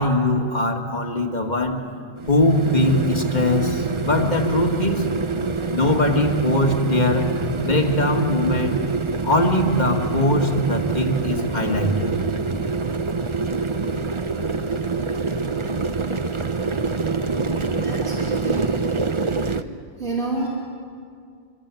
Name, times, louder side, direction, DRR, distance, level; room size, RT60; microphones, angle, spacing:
voice 1, 0.0-1.8 2.3-5.1 5.7-7.3 7.6-8.8 9.2-12.1, left 1 dB, 45° left, 3 dB, 2.4 m, -21 dB
sound 1, 2.2-19.6, right 4 dB, 30° right, 0.8 m, -25 dB
voice 2, 17.5-18.7 19.0-19.7 20.0-20.5, right 2 dB, 85° right, -4 dB, 4.0 m, -31 dB
25.5 x 25.0 x 8.6 m, 2.2 s
omnidirectional pair, 1.1 m